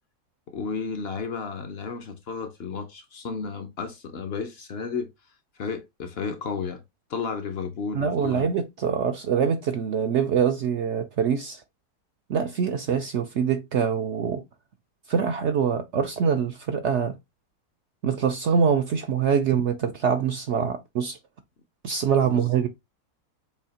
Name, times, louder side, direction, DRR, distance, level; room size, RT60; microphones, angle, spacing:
voice 1, 0.5-5.1 5.6-6.8 7.1-8.5 22.2-22.5, left 5 dB, 60° left, 0.7 m, -32 dB
voice 2, 7.9-11.6 12.3-14.4 15.1-17.2 18.0-21.2 21.8-22.7, right 7 dB, 65° right, 0.7 m, -24 dB
6.9 x 2.8 x 2.8 m
omnidirectional pair, 1.7 m